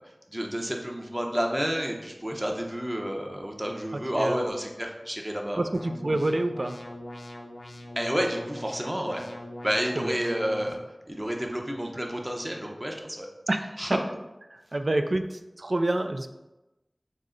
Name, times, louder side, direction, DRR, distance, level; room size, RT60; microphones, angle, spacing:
voice 1, 0.3-5.6 8.0-9.2 9.6-10.8 11.1-13.3 13.8-14.0, equal, 20° right, 1 dB, 0.7 m, -30 dB
voice 2, 3.9-4.5 5.6-6.8 10.0-10.2 13.5-14.0 14.5-16.3, right 1 dB, 70° right, 8 dB, 0.3 m, -28 dB
sound 1, 5.7-10.7, left 1 dB, 65° left, 0.5 m, -42 dB
6.3 x 2.1 x 3.8 m, 1.0 s
wide cardioid pair, 45°, 0 cm